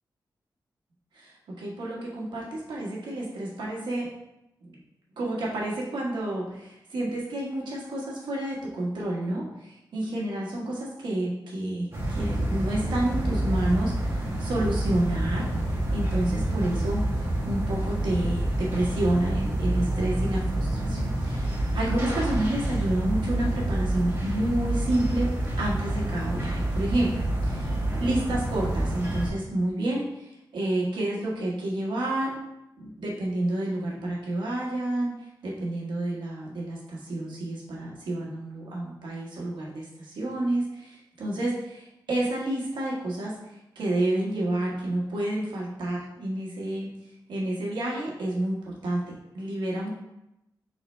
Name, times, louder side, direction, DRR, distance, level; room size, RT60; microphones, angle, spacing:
voice 1, 1.1-4.1 4.6-4.8 5.2-17.0 17.4-25.3 25.6-32.4 32.8-35.1 35.4-46.9 47.3-49.9, right 1 dB, 90° right, -4 dB, 1.3 m, -29 dB
sound 1, 11.9-29.3, right 1 dB, 35° right, 1.2 m, -28 dB
3.8 x 3.1 x 4.3 m, 0.89 s
cardioid pair, 80°, 8 cm